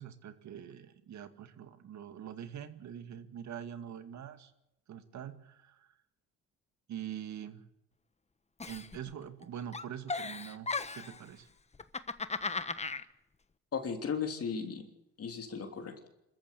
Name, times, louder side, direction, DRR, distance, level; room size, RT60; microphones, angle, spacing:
voice 1, 0.0-4.5 4.9-6.0 6.9-7.6 8.7-11.5, right 9 dB, 70° right, 9 dB, 2.2 m, -44 dB
Giggle, 8.6-9.4 9.7-11.2 11.7-13.0, left 3 dB, 20° left, 1.2 m, -36 dB
voice 2, 13.7-14.8 15.2-16.1, left 6 dB, 50° left, 4 dB, 3.2 m, -36 dB
26.0 x 14.0 x 8.4 m, 0.86 s
cardioid pair, 90°, 30 cm